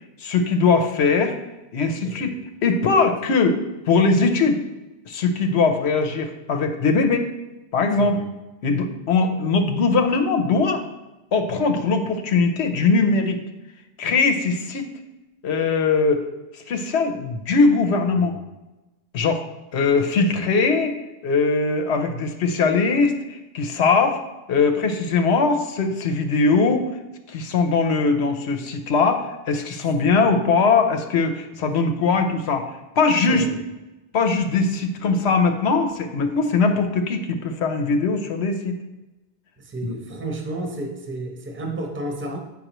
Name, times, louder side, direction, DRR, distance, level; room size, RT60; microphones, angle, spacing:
voice 1, 0.2-1.4 1.7-2.4 2.6-3.6 3.9-4.6 5.1-7.3 7.7-8.2 8.6-10.8 11.3-13.4 14.0-14.9 15.4-16.2 16.5-18.3 19.1-19.4 19.7-21.0 21.2-24.2 24.5-26.9 27.3-33.4 34.1-38.7 39.8-39.9, left 4 dB, 85° left, 5 dB, 1.0 m, -20 dB
voice 2, 2.0-2.4 8.0-8.2 18.1-18.3 33.3-33.6 39.6-42.5, right 1 dB, 10° right, 1 dB, 0.8 m, -32 dB
7.8 x 5.5 x 3.0 m, 1.1 s
omnidirectional pair, 1.1 m